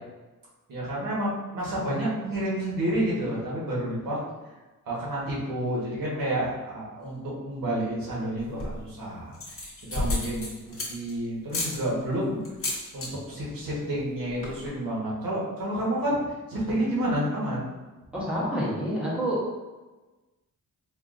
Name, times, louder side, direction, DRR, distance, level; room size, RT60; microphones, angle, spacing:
voice 1, 0.7-4.2 4.9-12.4 12.9-16.2 16.5-17.6, right 1 dB, 85° right, -6 dB, 1.4 m, -30 dB
sound 1, 8.4-8.9 9.3-11.1 11.5-11.8 12.4-13.1 13.4-13.7 13.9-14.0 14.3-14.7, left 2 dB, 40° left, 1.0 m, -31 dB
voice 2, 18.1-19.4, equal, 5° right, -7 dB, 1.0 m, -28 dB
4.4 x 2.6 x 2.5 m, 1.2 s
wide cardioid pair, 170°, 33 cm